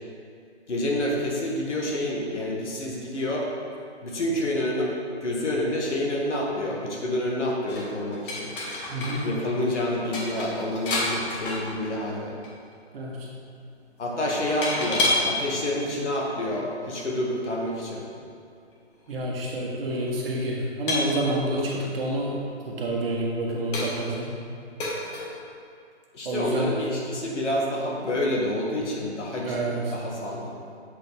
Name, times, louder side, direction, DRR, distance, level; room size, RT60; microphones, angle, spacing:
voice 1, 0.7-3.5 4.0-8.5 9.2-12.3 14.0-18.0 26.1-30.5, left 1 dB, 80° left, -2 dB, 1.5 m, -28 dB
sound 1, 7.7-9.3 9.5-9.6 9.9-12.1 12.4-12.7 14.3-15.3 16.1-16.2 18.7-18.8 19.0-19.1 19.9-20.1 20.9-21.8 22.4-22.5 23.1-23.2 23.7-24.2 24.8-25.3, left 2 dB, 50° left, 1.5 m, -29 dB
voice 2, 8.9-9.2 12.9-13.2 19.1-22.4 22.6-24.3 26.2-26.7 29.5-29.8, right 1 dB, 55° right, -2 dB, 1.4 m, -28 dB
7.4 x 4.3 x 3.5 m, 2.4 s
hypercardioid pair, 140°, 35 cm